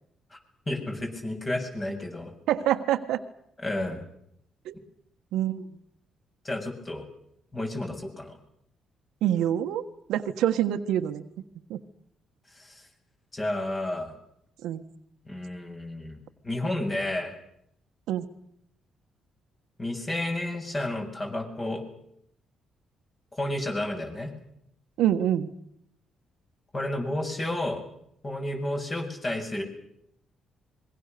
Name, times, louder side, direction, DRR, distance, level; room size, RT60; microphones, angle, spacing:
voice 1, 0.7-2.3 3.6-4.0 6.4-7.0 7.5-8.4 12.6-12.8 13.3-14.1 15.3-16.2 16.4-17.4 19.8-21.8 23.3-24.3 26.7-27.8 28.2-29.6, left 1 dB, 25° left, 3 dB, 7.1 m, -31 dB
voice 2, 2.5-3.2 4.6-4.7 5.3-5.6 9.2-11.2 11.7-11.8 14.6-14.8 18.1-18.3 25.0-25.5, right 11 dB, 85° right, 8 dB, 1.4 m, -26 dB
26.0 x 22.5 x 6.8 m, 0.74 s
cardioid pair, 90°, 0 cm